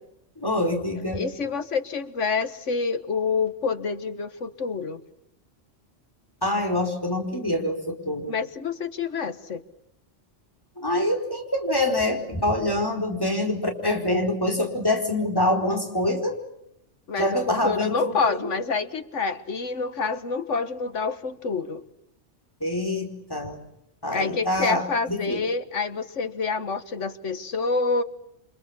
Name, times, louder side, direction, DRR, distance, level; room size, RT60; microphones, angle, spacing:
voice 1, 0.4-1.2 6.4-8.3 10.8-16.4 17.2-18.4 22.6-23.6 24.0-25.4, left 1 dB, 20° left, 4 dB, 4.6 m, -25 dB
voice 2, 1.1-5.0 8.3-9.6 17.1-21.8 24.1-28.0, left 4 dB, 75° left, 11 dB, 1.8 m, -27 dB
29.0 x 26.0 x 7.2 m, 0.80 s
omnidirectional pair, 1.3 m